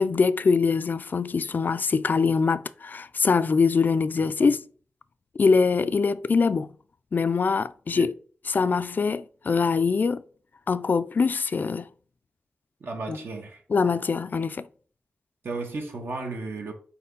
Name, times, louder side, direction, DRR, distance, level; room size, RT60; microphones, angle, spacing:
voice 1, 0.0-4.6 5.4-6.7 7.1-8.1 8.5-10.2 10.7-11.9 13.1-13.2 13.7-14.7, left 5 dB, 50° left, 0.3 m, -23 dB
voice 2, 12.8-13.6 15.4-16.7, right 3 dB, 70° right, 1.4 m, -34 dB
4.3 x 4.2 x 5.3 m
cardioid pair, 70°, 4 cm